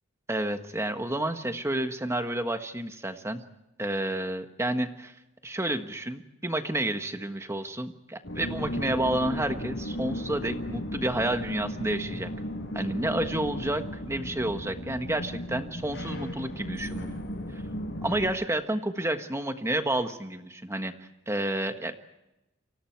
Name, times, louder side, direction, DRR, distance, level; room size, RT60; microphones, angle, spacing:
voice 1, 0.3-3.4 3.8-5.1 5.4-12.3 12.7-17.1 18.0-22.0, right 1 dB, 15° right, 7 dB, 1.4 m, -30 dB
sound 1, 8.2-18.3, equal, 55° left, 7.1 m, -35 dB
29.0 x 25.0 x 4.6 m, 0.95 s
head